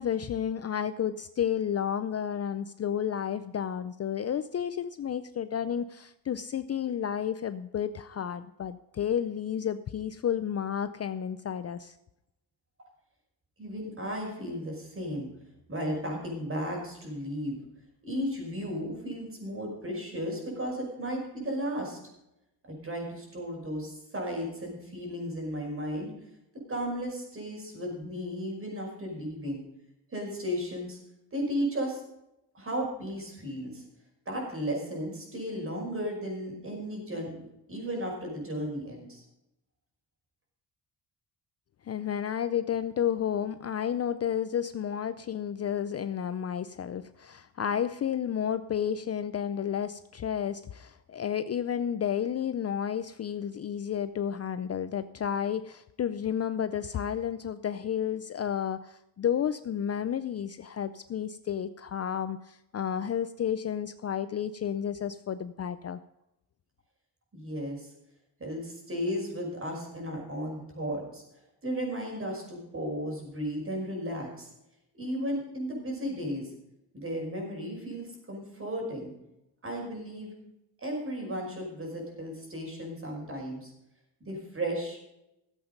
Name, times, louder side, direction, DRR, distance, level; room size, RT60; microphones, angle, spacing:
voice 1, 0.0-11.9 41.9-66.0, left 9 dB, 40° left, 12 dB, 0.5 m, -31 dB
voice 2, 13.6-15.3 15.7-17.6 18.0-22.0 22.7-26.1 26.7-29.6 30.1-31.0 31.3-32.0 32.5-33.8 34.3-39.2 67.3-67.9 68.4-71.2 71.6-74.5 75.0-76.5 76.9-79.1 79.6-80.3 80.8-83.7 84.3-85.0, equal, 30° right, 0 dB, 5.4 m, -34 dB
14.5 x 8.0 x 5.3 m, 0.87 s
cardioid pair, 115°, 41 cm